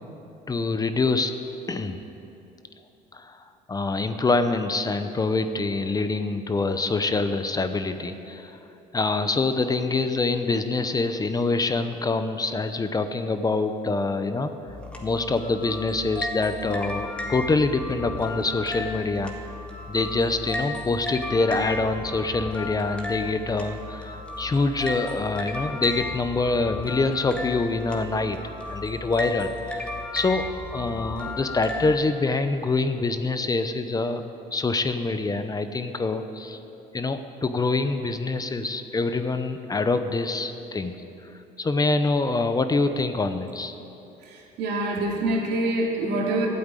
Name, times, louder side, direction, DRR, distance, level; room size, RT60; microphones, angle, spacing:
voice 1, 0.5-1.3 1.7-2.0 3.1-8.6 8.9-14.5 15.0-19.5 19.9-28.4 28.7-30.5 30.7-34.2 34.5-36.6 36.9-40.9 41.6-43.8, left 3 dB, 20° left, 9 dB, 0.7 m, -25 dB
sound 1, 14.7-32.0, left 2 dB, 5° left, 1.7 m, -34 dB
voice 2, 44.6-46.5, right 2 dB, 80° right, -1 dB, 2.6 m, -25 dB
12.5 x 8.7 x 9.0 m, 2.9 s
cardioid pair, 110°, 17 cm